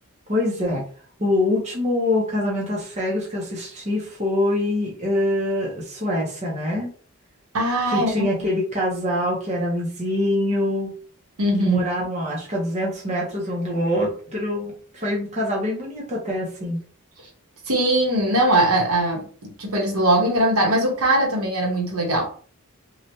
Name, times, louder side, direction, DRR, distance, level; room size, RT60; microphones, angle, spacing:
voice 1, 0.3-0.8 1.2-6.9 7.9-10.9 11.6-16.8, left 1 dB, 30° right, -3 dB, 0.7 m, -24 dB
voice 2, 7.5-8.1 11.4-11.8 17.7-22.2, right 1 dB, 85° right, -1 dB, 1.1 m, -20 dB
3.1 x 2.3 x 2.7 m, 0.44 s
head